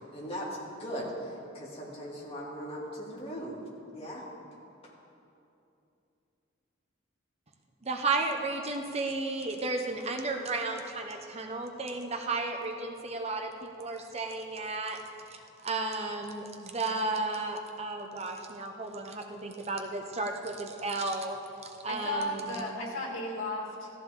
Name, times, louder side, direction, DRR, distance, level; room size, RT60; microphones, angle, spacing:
voice 1, 0.1-3.6 3.9-4.2 4.8-4.9, equal, 30° left, -5 dB, 2.6 m, -39 dB
voice 2, 7.8-15.0 15.3-22.6, right 3 dB, 30° right, 3 dB, 0.8 m, -33 dB
voice 3, 21.9-23.9, left 1 dB, 85° left, -2 dB, 2.7 m, -34 dB
15.0 x 14.0 x 3.8 m, 2.7 s
head